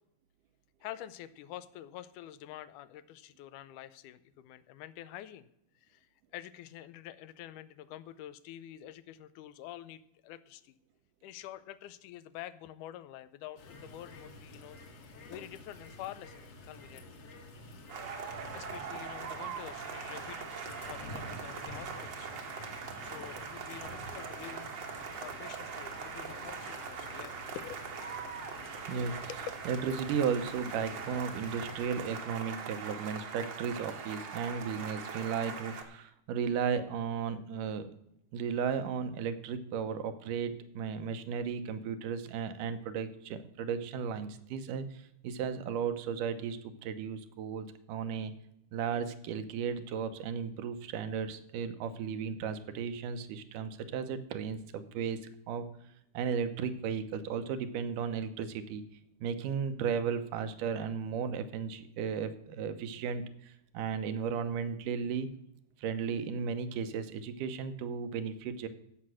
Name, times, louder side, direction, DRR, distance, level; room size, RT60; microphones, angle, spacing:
voice 1, 0.8-5.5 5.8-6.1 6.3-10.8 11.2-15.0 15.3-17.1 18.2-22.7 23.0-28.0 28.6-28.7 29.3-29.4, left 12 dB, 80° left, 14 dB, 2.1 m, -47 dB
sound 1, 13.6-31.9, left 2 dB, 55° left, 2.2 m, -50 dB
sound 2, 17.9-35.8, right 6 dB, 60° right, 1.2 m, -42 dB
voice 2, 29.7-37.9 38.3-48.3 48.7-55.2 55.5-55.7 56.1-58.8 59.2-65.3 65.8-68.7, right 6 dB, 85° right, 9 dB, 2.4 m, -35 dB
14.5 x 5.9 x 6.3 m, 0.77 s
omnidirectional pair, 3.6 m